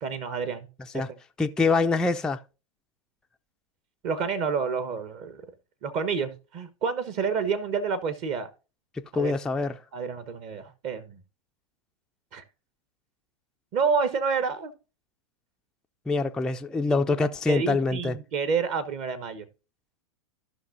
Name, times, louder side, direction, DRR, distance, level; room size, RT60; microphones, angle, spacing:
voice 1, 0.0-0.7 0.9-1.1 4.0-5.4 5.8-8.5 9.1-9.4 9.9-11.2 12.3-12.4 13.7-14.7 17.5-19.4, right 5 dB, 40° right, 1.1 m, -29 dB
voice 2, 1.4-2.4 9.1-9.8 16.1-18.2, left 3 dB, 5° left, 0.3 m, -25 dB
14.5 x 5.5 x 2.5 m
hypercardioid pair, 110°, 18 cm